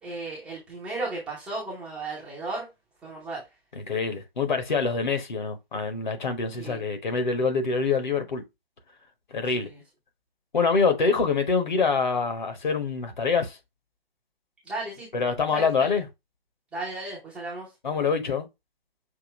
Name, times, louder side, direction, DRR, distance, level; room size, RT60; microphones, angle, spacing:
voice 1, 0.0-2.7 3.0-3.4 6.6-6.8 9.6-9.8 14.6-15.1 15.5-15.9 16.7-17.7, right 2 dB, 5° right, 0.6 m, -35 dB
voice 2, 3.9-8.4 9.3-9.7 10.5-13.6 15.1-16.1 17.8-18.5, left 4 dB, 50° left, 1.3 m, -25 dB
6.0 x 2.8 x 2.9 m
figure-of-eight pair, 140°, 30 cm